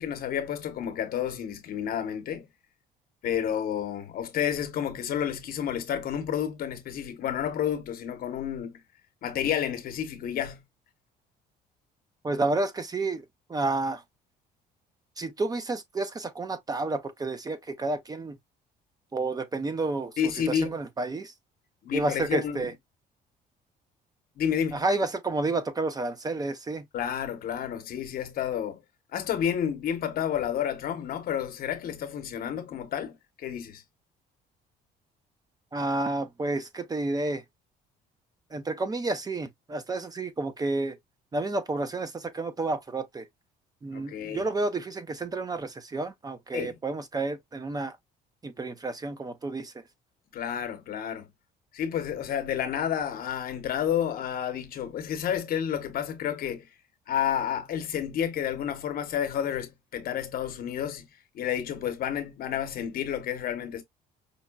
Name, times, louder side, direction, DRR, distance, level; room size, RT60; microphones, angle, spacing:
voice 1, 0.0-2.5 3.2-8.8 9.2-10.6 20.2-20.7 21.8-22.7 24.4-24.8 26.9-28.8 29.1-33.8 43.9-44.5 46.5-46.7 50.3-51.3 51.7-56.7 57.1-61.1 61.3-63.8, left 9 dB, 60° left, 1.0 m, -30 dB
voice 2, 12.2-13.2 13.5-14.0 15.2-18.4 19.1-20.1 20.5-21.3 21.9-22.7 24.7-26.9 35.7-37.4 38.5-41.0 41.3-43.3 43.8-48.0 48.4-49.7, right 2 dB, 20° right, 0.6 m, -30 dB
5.3 x 2.2 x 2.3 m
cardioid pair, 110°, 17 cm